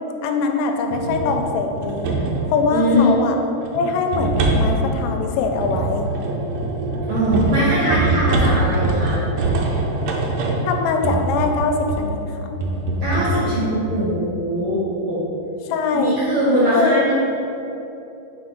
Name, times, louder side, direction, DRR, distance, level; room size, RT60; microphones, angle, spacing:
voice 1, 0.2-2.2 2.5-3.4 3.7-6.1 10.7-12.5 15.7-16.2 16.7-17.0, left 4 dB, 85° left, 4 dB, 2.2 m, -22 dB
sound 1, 0.9-2.5 3.6-12.1 12.6-13.4, right 2 dB, 85° right, 1.5 m, -23 dB
voice 2, 2.7-3.1 7.1-9.2 13.0-15.2 15.9-17.2, equal, 60° right, -8 dB, 1.4 m, -21 dB
4.7 x 4.3 x 5.1 m, 2.8 s
omnidirectional pair, 3.9 m